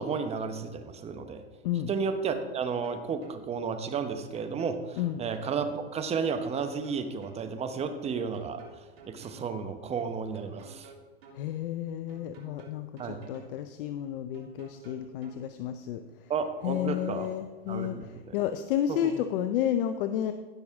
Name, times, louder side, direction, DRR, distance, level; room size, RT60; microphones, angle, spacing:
voice 1, 0.0-1.4 1.9-8.6 9.1-10.9 13.0-13.2 16.3-17.3 17.7-18.3 18.9-19.1, right 5 dB, 20° right, 8 dB, 1.0 m, -32 dB
sound 1, 2.8-3.4 4.1-5.5 6.3-7.4 8.1-9.5 10.3-11.4 12.1-13.5 14.3-15.4, right 4 dB, 70° right, 3.3 m, -52 dB
voice 2, 11.3-16.0 16.6-20.3, left 10 dB, 55° left, 10 dB, 0.7 m, -31 dB
16.0 x 6.3 x 3.6 m, 1.3 s
hypercardioid pair, 120°, 32 cm